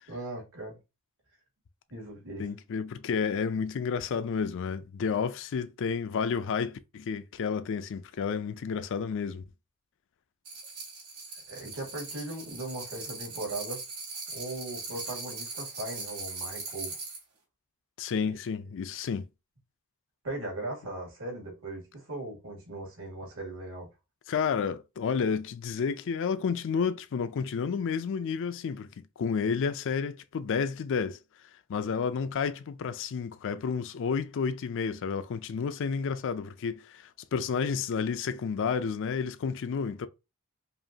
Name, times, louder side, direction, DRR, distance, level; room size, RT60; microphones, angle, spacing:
voice 1, 0.1-0.8 1.9-2.5 11.5-13.8 14.3-17.0 18.3-18.4 20.2-23.9, right 2 dB, 65° right, 2.2 m, -38 dB
voice 2, 2.4-9.4 18.0-19.3 24.3-28.9 29.2-31.2 31.7-40.1, left 6 dB, 55° left, 0.4 m, -31 dB
sound 1, 10.4-17.2, right 4 dB, 90° right, 2.5 m, -40 dB
5.0 x 2.5 x 2.7 m
head